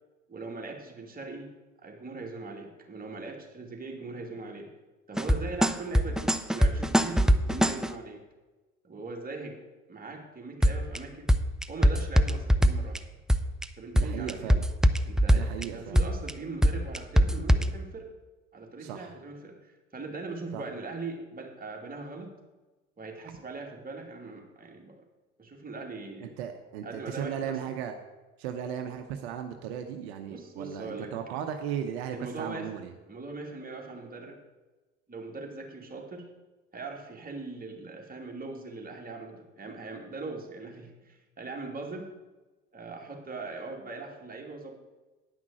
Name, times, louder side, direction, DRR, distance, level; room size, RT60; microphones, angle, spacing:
voice 1, 0.3-1.5 1.8-4.7 5.1-8.2 8.8-9.6 9.9-11.3 11.7-13.0 13.8-14.6 15.0-18.1 18.5-22.4 23.0-25.0 25.4-26.3 26.8-27.8 30.3-31.1 32.1-32.7 33.1-34.4 35.1-36.3 36.7-42.1 42.7-44.7, right 3 dB, 30° right, 0 dB, 2.8 m, -40 dB
sound 1, 5.2-7.9 10.6-11.0 11.3-13.0 13.3-13.6 14.0-15.6 16.0-16.3 16.6-17.7, equal, ahead, 0.6 m, -22 dB
voice 2, 13.9-14.6 15.3-16.0 18.8-19.1 20.5-20.6 26.2-27.9 28.4-32.9, right 9 dB, 80° right, 6 dB, 0.8 m, -36 dB
9.9 x 6.0 x 7.6 m, 1.2 s
hypercardioid pair, 60°, 31 cm